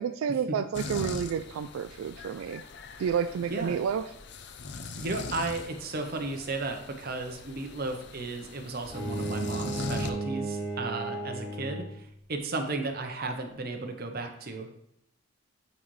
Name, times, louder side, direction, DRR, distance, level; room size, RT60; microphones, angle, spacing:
voice 1, 0.0-2.6 3.0-4.0, right 7 dB, 85° right, 10 dB, 0.3 m, -30 dB
sound 1, 0.7-10.1, left 3 dB, 55° left, 0.5 m, -41 dB
voice 2, 5.0-14.8, right 3 dB, 50° right, 5 dB, 0.8 m, -34 dB
Bowed string instrument, 8.9-12.1, right 2 dB, 15° right, 1.6 m, -34 dB
9.6 x 4.0 x 3.2 m, 0.79 s
head